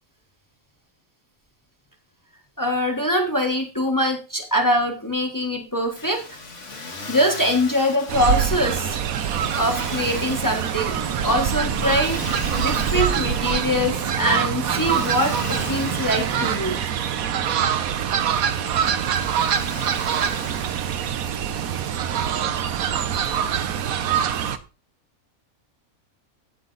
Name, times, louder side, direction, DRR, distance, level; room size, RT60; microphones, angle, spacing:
voice 1, 2.6-6.4 7.1-9.0 9.6-16.8, equal, 15° left, 2 dB, 1.4 m, -23 dB
Motor vehicle (road), 5.9-23.9, left 3 dB, 60° left, 2.1 m, -40 dB
Fowl, 8.1-24.6, right 9 dB, 90° right, 1.3 m, -24 dB
sound 1, 11.0-16.6, right 3 dB, 35° right, 0.4 m, -34 dB
15.0 x 5.8 x 3.9 m, 0.33 s
omnidirectional pair, 1.4 m